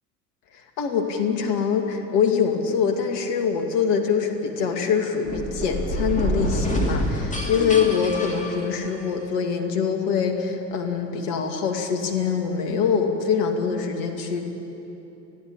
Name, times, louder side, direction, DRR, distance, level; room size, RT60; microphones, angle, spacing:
voice 1, 0.8-14.4, left 6 dB, 50° left, 4 dB, 2.5 m, -24 dB
sound 1, 5.2-9.2, equal, 15° left, 3.0 m, -27 dB
29.5 x 10.5 x 8.6 m, 3.0 s
figure-of-eight pair, 75°, 48 cm